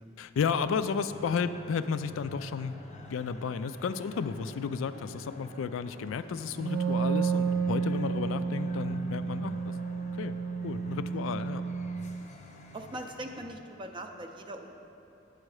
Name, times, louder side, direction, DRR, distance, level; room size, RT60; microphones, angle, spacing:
voice 1, 0.2-2.7 3.1-9.7 10.2-10.4 10.6-11.6, left 6 dB, 85° left, 13 dB, 0.3 m, -32 dB
sound 1, 1.1-13.4, left 2 dB, 35° left, 0.7 m, -50 dB
Wind instrument woodwind instrument, 6.5-12.2, right 5 dB, 60° right, 0.7 m, -31 dB
voice 2, 12.7-14.7, right 1 dB, 25° right, 4 dB, 0.4 m, -41 dB
9.7 x 6.5 x 4.8 m, 2.9 s
head